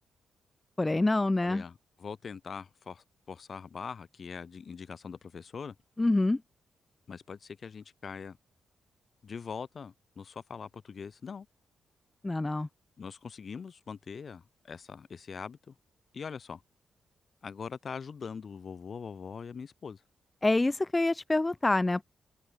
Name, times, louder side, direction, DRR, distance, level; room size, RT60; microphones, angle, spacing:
voice 1, 0.8-1.6 6.0-6.4 12.2-12.7 20.4-22.0, left 2 dB, 15° left, 0.3 m, -26 dB
voice 2, 1.4-5.8 7.1-8.4 9.2-11.5 13.0-15.8 16.1-16.6 17.4-20.0, left 6 dB, 40° left, 2.2 m, -42 dB
wide cardioid pair, 140°, 0 cm